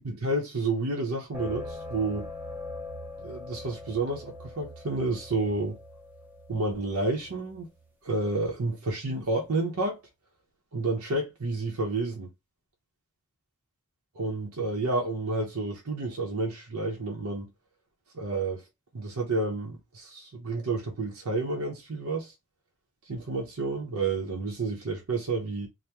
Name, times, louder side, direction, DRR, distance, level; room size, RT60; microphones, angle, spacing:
voice 1, 0.0-2.3 3.2-5.8 6.5-7.7 8.0-10.0 10.7-12.3 14.1-17.5 18.1-18.6 18.9-22.3 23.1-25.7, right 2 dB, 75° right, 0.7 m, -30 dB
sound 1, 1.3-7.9, left 2 dB, 10° right, 0.7 m, -42 dB
3.4 x 2.1 x 2.9 m
head